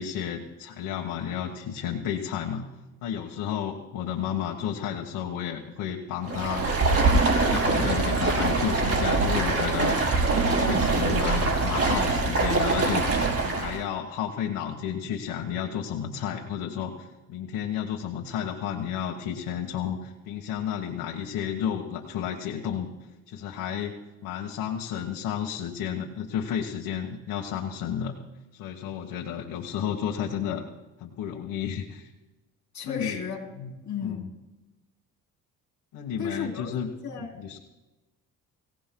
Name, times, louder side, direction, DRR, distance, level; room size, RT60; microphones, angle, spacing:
voice 1, 0.0-2.6 3.0-6.7 7.2-10.0 10.3-22.9 23.3-28.1 28.5-30.7 31.0-32.1 32.8-33.2 33.6-33.7 34.0-34.3 35.9-36.9 37.4-37.6, left 9 dB, 85° left, 1.6 m, -32 dB
Stream, 6.2-13.8, right 3 dB, 45° right, 4.7 m, -23 dB
voice 2, 32.7-33.4 33.8-34.2 36.2-36.7 37.0-37.6, left 6 dB, 55° left, 3.8 m, -34 dB
25.0 x 17.0 x 2.3 m
cardioid pair, 95°, 33 cm